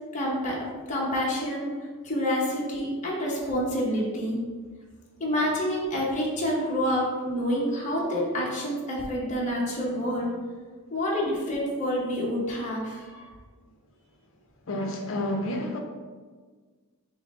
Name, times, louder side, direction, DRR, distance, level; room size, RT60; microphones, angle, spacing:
voice 1, 0.1-1.7 2.0-4.4 5.2-10.3 10.9-13.3, equal, 35° left, -4 dB, 0.8 m, -28 dB
voice 2, 14.7-15.8, left 1 dB, 60° left, 3 dB, 0.6 m, -29 dB
5.9 x 2.1 x 3.5 m, 1.5 s
head